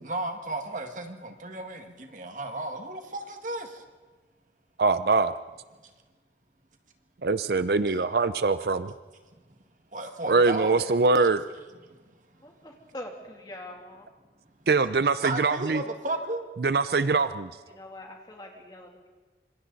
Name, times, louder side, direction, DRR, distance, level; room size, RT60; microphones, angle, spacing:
voice 1, 0.0-3.8 9.9-10.9 11.9-12.0 15.2-16.5, right 2 dB, 45° right, 5 dB, 2.0 m, -34 dB
voice 2, 4.8-5.3 7.2-8.9 10.3-11.4 14.7-15.8 16.6-17.5, right 3 dB, 60° right, 13 dB, 0.6 m, -23 dB
voice 3, 12.4-14.1 17.7-19.1, left 1 dB, 25° left, 1 dB, 3.0 m, -43 dB
26.5 x 26.0 x 4.1 m, 1.3 s
head